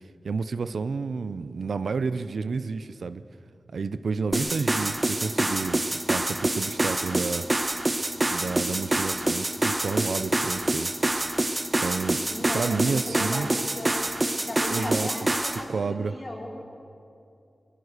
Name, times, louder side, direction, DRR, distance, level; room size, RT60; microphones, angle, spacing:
voice 1, 0.2-3.2 3.7-7.9 8.3-10.9 11.8-12.2 12.5-13.5 14.7-15.1 15.5-16.2, right 4 dB, 75° right, 13 dB, 0.6 m, -30 dB
sound 1, 4.3-15.6, right 2 dB, 25° right, 1.1 m, -26 dB
voice 2, 12.3-13.5 13.8-13.9 14.4-16.6, left 1 dB, 35° left, -2 dB, 4.9 m, -36 dB
23.0 x 18.0 x 6.7 m, 2.6 s
wide cardioid pair, 85°, 0 cm